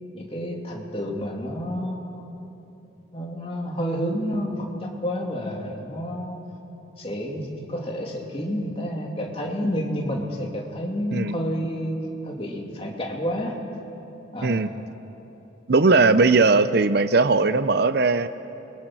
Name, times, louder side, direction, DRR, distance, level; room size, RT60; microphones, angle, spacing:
voice 1, 0.1-2.5 3.1-6.4 7.0-12.0 12.2-13.6 14.3-14.6 15.8-16.3, equal, 30° left, -1 dB, 2.9 m, -30 dB
voice 2, 15.7-18.3, right 3 dB, 55° right, 13 dB, 0.6 m, -19 dB
28.5 x 22.5 x 6.2 m, 3.0 s
head